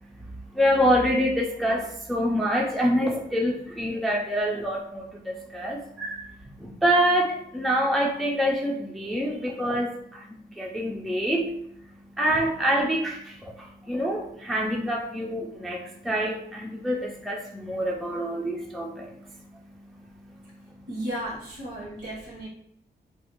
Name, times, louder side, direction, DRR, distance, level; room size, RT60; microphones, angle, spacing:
voice 1, 0.5-6.3 6.6-10.3 10.5-11.5 12.1-20.6 21.8-21.9, equal, ahead, -2 dB, 0.3 m, -26 dB
voice 2, 20.9-22.5, right 1 dB, 80° right, -5 dB, 1.0 m, -34 dB
2.5 x 2.0 x 2.9 m, 0.70 s
wide cardioid pair, 125°, 17 cm